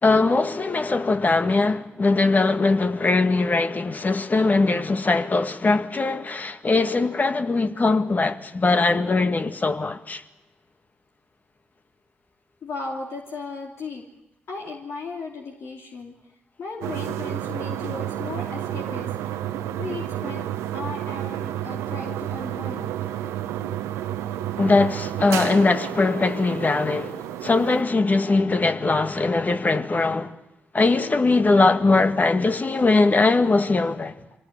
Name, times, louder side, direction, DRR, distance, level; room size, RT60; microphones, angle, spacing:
voice 1, 0.0-10.2 24.6-30.3 30.7-34.1, left 3 dB, 35° left, 1.9 m, -21 dB
voice 2, 12.6-14.0 14.5-16.1 16.6-19.1 19.8-20.5 20.7-23.1 23.6-23.8 24.1-24.3 30.8-31.2, left 4 dB, 60° left, 2.6 m, -36 dB
sound 1, 16.8-27.8, right 11 dB, 75° right, 1.2 m, -31 dB
25.0 x 18.5 x 8.6 m
hypercardioid pair, 40°, 5 cm